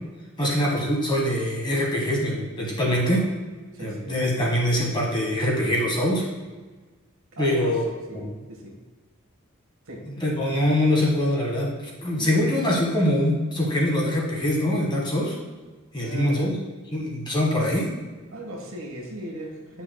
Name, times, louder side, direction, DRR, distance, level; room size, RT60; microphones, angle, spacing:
voice 1, 0.4-3.2 3.8-6.2 7.4-7.8 8.1-8.2 10.1-11.7 12.0-15.3 15.9-16.5 16.9-17.9, left 1 dB, 20° left, -3 dB, 1.7 m, -23 dB
voice 2, 2.8-3.2 3.7-4.2 7.3-7.8 8.1-8.7 9.9-10.0 12.2-12.5 16.0-16.5 18.3-19.8, right 1 dB, 70° right, -1 dB, 1.5 m, -37 dB
9.7 x 5.8 x 2.3 m, 1.3 s
head